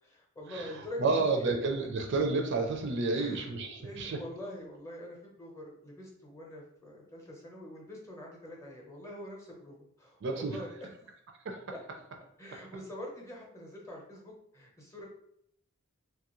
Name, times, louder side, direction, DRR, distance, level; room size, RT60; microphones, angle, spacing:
voice 1, 0.0-1.5 3.1-3.5 3.8-11.1 11.7-11.8 12.4-15.1, left 1 dB, 15° left, -1 dB, 0.7 m, -45 dB
voice 2, 1.0-4.2 10.2-10.6 11.5-11.6, right 3 dB, 60° right, 3 dB, 0.4 m, -30 dB
2.9 x 2.4 x 3.0 m, 0.73 s
head